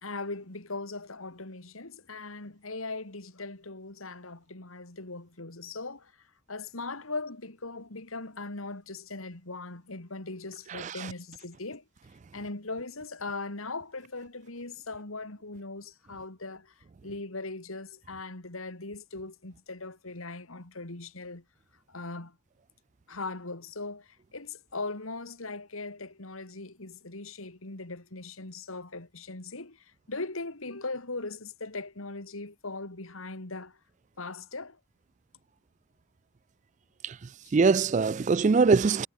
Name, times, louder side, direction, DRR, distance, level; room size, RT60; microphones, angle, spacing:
voice 1, 0.0-11.8 12.3-21.4 21.9-22.4 23.1-33.8 34.2-34.8 37.4-37.5, left 3 dB, 85° left, 2.8 m, -39 dB
voice 2, 10.7-11.1 37.0-37.2 37.5-39.1, right 4 dB, 35° right, 0.3 m, -23 dB
head